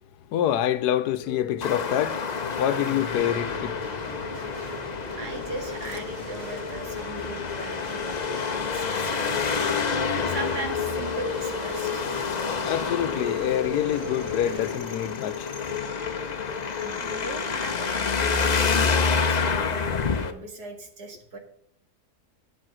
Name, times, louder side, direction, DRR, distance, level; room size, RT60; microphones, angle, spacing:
voice 1, 0.3-2.2 2.6-3.9 12.6-15.5, left 11 dB, 80° left, 1.2 m, -26 dB
sound 1, 1.2-20.4, left 8 dB, 65° left, 0.9 m, -36 dB
Traffic noise roadway noise, 1.6-20.3, left 5 dB, 40° left, 0.6 m, -29 dB
sound 2, 3.1-14.8, right 1 dB, 25° right, 2.0 m, -40 dB
voice 2, 5.2-9.4 10.1-12.1 16.8-21.4, right 2 dB, 75° right, 2.4 m, -39 dB
9.9 x 7.6 x 6.1 m
omnidirectional pair, 1.7 m